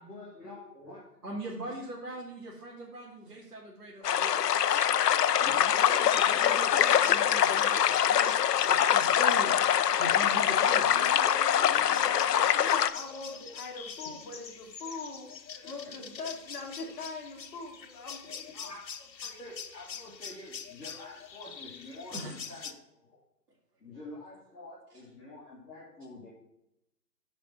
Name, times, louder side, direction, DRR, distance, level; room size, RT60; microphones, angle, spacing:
voice 1, 0.0-1.2 5.4-5.7 10.5-12.0 12.5-14.1 15.5-15.9 18.5-23.2 23.8-26.3, left 2 dB, ahead, -19 dB, 0.8 m, -48 dB
voice 2, 1.2-4.5 5.6-8.3 8.7-9.5 10.0-11.0 22.1-22.3, right 2 dB, 65° right, -6 dB, 2.7 m, -41 dB
sound 1, 4.0-12.9, left 10 dB, 70° left, 0.6 m, -24 dB
sound 2, 5.8-22.7, left 7 dB, 90° left, 1.1 m, -45 dB
voice 3, 10.8-15.3 15.6-18.5, left 3 dB, 30° left, -3 dB, 2.3 m, -41 dB
8.8 x 5.1 x 5.7 m, 0.84 s
hypercardioid pair, 170°, 49 cm